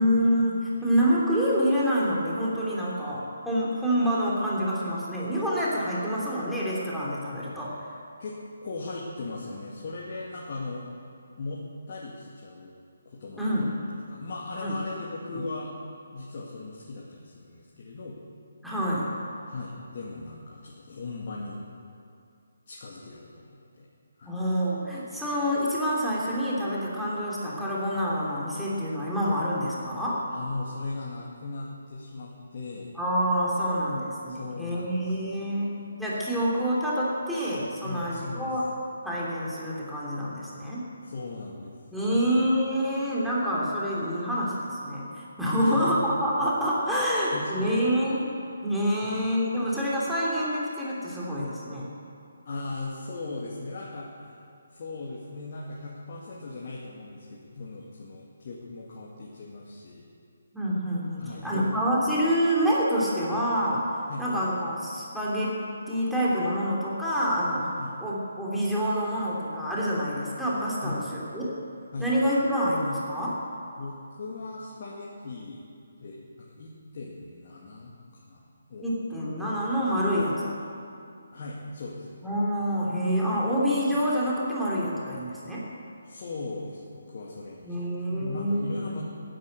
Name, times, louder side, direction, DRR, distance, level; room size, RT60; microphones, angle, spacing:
voice 1, 0.0-7.7 13.4-13.7 14.6-14.7 15.3-15.4 18.6-19.1 24.2-30.2 32.9-38.7 39.0-40.9 41.9-48.3 48.6-51.9 60.5-63.9 64.2-65.6 65.9-67.7 68.0-71.5 72.0-73.4 78.8-80.5 82.2-85.6 87.6-88.7, equal, ahead, -8 dB, 3.1 m, -27 dB
voice 2, 8.2-10.9 11.4-12.8 13.1-15.7 16.1-18.2 19.5-21.6 22.7-23.9 24.2-24.4 30.3-33.0 34.3-35.9 37.8-38.5 41.0-41.7 42.1-42.3 45.6-46.0 46.9-47.9 49.0-49.1 52.4-54.4 54.7-60.0 61.2-61.9 64.1-64.3 67.8-68.0 70.8-71.0 71.9-72.1 73.8-75.6 76.0-78.4 78.7-78.9 81.3-82.2 86.0-89.0, left 3 dB, 40° left, -4 dB, 2.2 m, -38 dB
15.0 x 10.5 x 8.2 m, 2.5 s
figure-of-eight pair, 145°, 0 cm